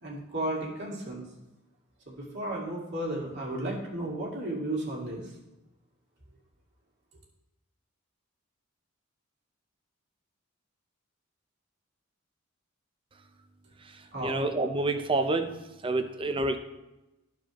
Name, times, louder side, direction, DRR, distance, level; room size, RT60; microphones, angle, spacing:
voice 1, 0.0-1.3 2.1-5.3 14.1-14.3, right 1 dB, 55° right, -4 dB, 2.1 m, -34 dB
voice 2, 14.2-15.5 15.8-16.6, right 2 dB, 25° right, 8 dB, 0.5 m, -27 dB
13.5 x 4.7 x 3.0 m, 0.99 s
head